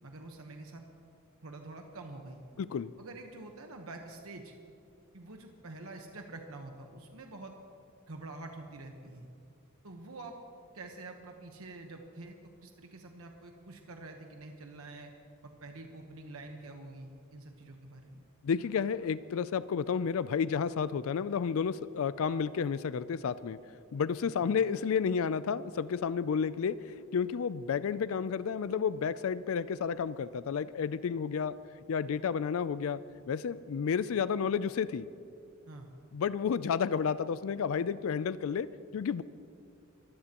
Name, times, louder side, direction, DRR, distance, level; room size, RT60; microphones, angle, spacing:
voice 1, 0.0-0.8 1.4-2.4 3.0-4.5 5.1-7.5 8.1-9.3 9.8-10.4 10.7-15.1 15.4-18.3 24.5-24.6 35.7-35.9, right 2 dB, 80° right, 3 dB, 1.2 m, -47 dB
voice 2, 2.6-2.9 18.4-23.6 23.9-31.5 31.9-33.0 33.3-35.1 36.1-38.7 38.9-39.2, left 6 dB, 70° left, 15 dB, 0.4 m, -31 dB
24.0 x 15.5 x 3.0 m, 2.6 s
head